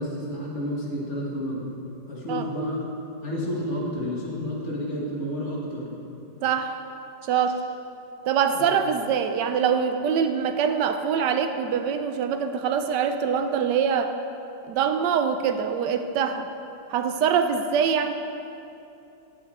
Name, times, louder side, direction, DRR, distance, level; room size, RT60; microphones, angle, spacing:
voice 1, 0.0-1.7 2.1-2.9 3.2-5.9 8.5-8.7, equal, 40° left, -4 dB, 1.8 m, -30 dB
voice 2, 6.4-6.8 7.2-7.6 8.2-14.1 14.7-16.5 16.9-18.1, right 7 dB, 80° right, 8 dB, 1.2 m, -24 dB
10.5 x 8.0 x 4.1 m, 2.7 s
omnidirectional pair, 1.9 m